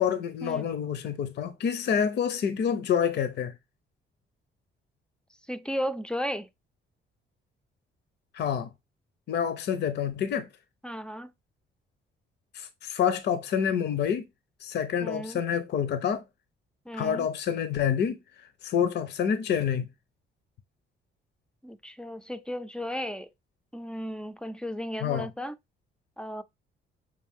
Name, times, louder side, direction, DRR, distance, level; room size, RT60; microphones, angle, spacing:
voice 1, 0.0-3.5 8.3-8.7 9.3-10.5 12.5-14.2 14.6-16.2 16.9-18.2 18.6-19.9 25.0-25.3, left 8 dB, 60° left, 0.6 m, -27 dB
voice 2, 5.5-6.5 10.8-11.3 15.0-15.4 16.9-17.3 21.6-23.3 23.7-25.5 26.2-26.4, equal, 5° left, 0.4 m, -34 dB
6.1 x 2.4 x 3.6 m
cardioid pair, 90°, 20 cm